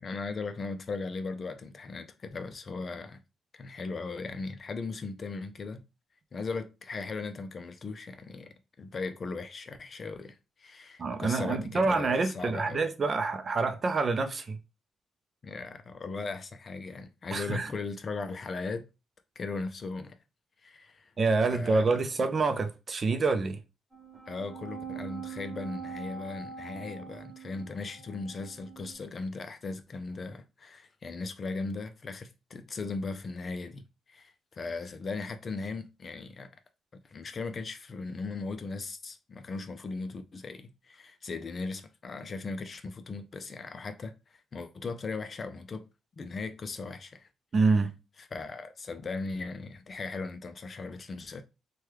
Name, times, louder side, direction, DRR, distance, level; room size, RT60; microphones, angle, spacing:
voice 1, 0.0-3.2 3.5-5.8 6.3-12.8 15.4-18.9 19.4-20.1 20.6-21.1 21.5-22.0 24.3-33.8 34.1-36.5 36.9-44.1 44.5-45.8 46.2-47.3 47.7-47.8 48.3-51.4, left 3 dB, 40° left, 0.4 m, -38 dB
voice 2, 11.0-14.6 17.3-17.7 21.2-23.6 47.5-47.9, right 3 dB, 40° right, 0.5 m, -27 dB
sound 1, 23.9-28.9, right 6 dB, 15° right, 1.0 m, -43 dB
3.1 x 2.2 x 3.0 m
cardioid pair, 100°, 0 cm